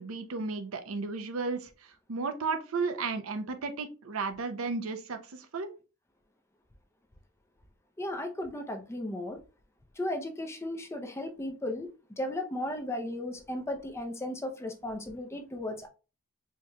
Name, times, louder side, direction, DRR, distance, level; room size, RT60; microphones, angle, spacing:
voice 1, 0.0-5.7, right 4 dB, 80° right, 0.6 m, -34 dB
voice 2, 8.0-9.4 10.0-11.9 12.2-15.9, left 1 dB, 15° left, 0.5 m, -35 dB
4.5 x 2.9 x 2.2 m
head